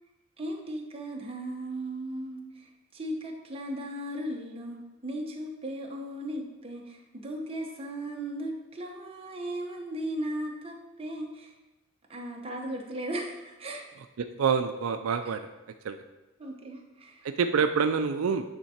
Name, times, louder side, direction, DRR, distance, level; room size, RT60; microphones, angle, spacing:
voice 1, 0.4-11.5 12.1-13.8 16.4-17.3, right 1 dB, 30° right, 0 dB, 1.0 m, -37 dB
voice 2, 14.2-15.4 15.8-16.0 17.2-18.4, right 6 dB, 85° right, 8 dB, 0.4 m, -26 dB
8.8 x 3.7 x 4.3 m, 1.1 s
head